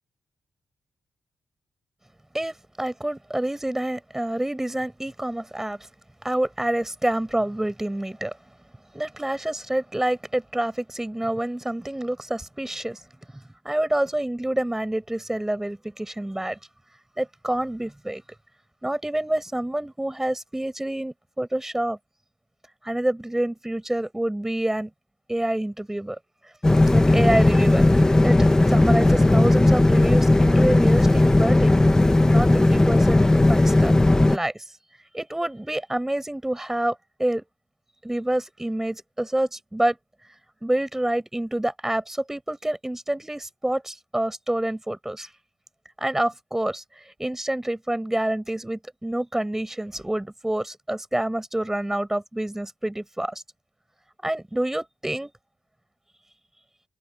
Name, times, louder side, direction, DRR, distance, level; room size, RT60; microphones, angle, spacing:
voice 1, 2.3-5.9 6.2-8.4 8.9-13.0 13.3-16.6 17.2-18.2 18.8-22.0 22.8-24.9 25.3-26.2 26.9-31.7 32.3-34.0 34.3-34.6 35.1-37.4 38.0-40.0 40.6-45.3 46.0-53.4 54.2-55.3, right 1 dB, 5° right, 7.4 m, -27 dB
sound 1, 26.6-34.4, left 2 dB, 10° left, 1.1 m, -17 dB
wide cardioid pair, 150°, 5 cm